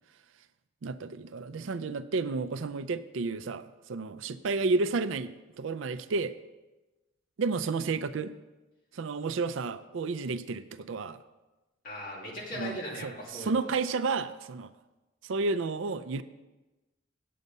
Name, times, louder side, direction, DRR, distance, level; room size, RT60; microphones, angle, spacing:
voice 1, 0.8-6.3 7.4-8.3 8.9-11.2 12.5-14.7 15.2-16.2, right 4 dB, 75° right, 12 dB, 0.4 m, -31 dB
voice 2, 11.8-13.7, left 1 dB, 45° left, -4 dB, 2.5 m, -39 dB
8.5 x 8.0 x 5.3 m, 1.1 s
head